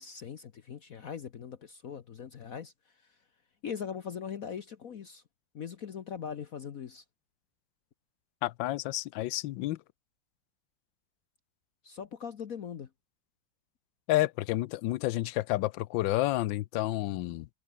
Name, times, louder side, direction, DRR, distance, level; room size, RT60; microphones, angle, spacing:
voice 1, 0.0-3.2 3.6-5.2 5.5-7.0 11.8-12.9, left 7 dB, 50° left, 1.2 m, -41 dB
voice 2, 8.4-9.8 14.1-17.5, left 16 dB, 75° left, 1.3 m, -30 dB
omnidirectional pair, 2.1 m